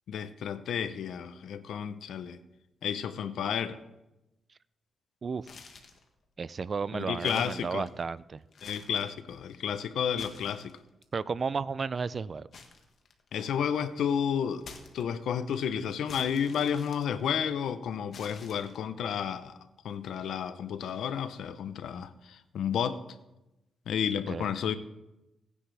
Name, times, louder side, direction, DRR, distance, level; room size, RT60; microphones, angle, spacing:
voice 1, 0.1-2.4 2.8-3.8 6.9-7.9 8.6-10.8 13.3-14.7 14.9-19.6 19.8-23.0 23.9-24.8, left 8 dB, 85° left, 12 dB, 0.7 m, -31 dB
sound 1, 5.4-6.1 6.6-6.7 7.1-8.1 8.5-9.2 10.0-11.0 12.5-13.6 14.6-15.4 16.1-17.6 18.1-19.0, left 5 dB, 60° left, 1.5 m, -50 dB
voice 2, 6.4-8.4 11.1-12.5 24.3-24.5, right 5 dB, 45° right, 18 dB, 0.4 m, -33 dB
17.0 x 9.9 x 3.4 m, 0.96 s
cardioid pair, 95°, 0 cm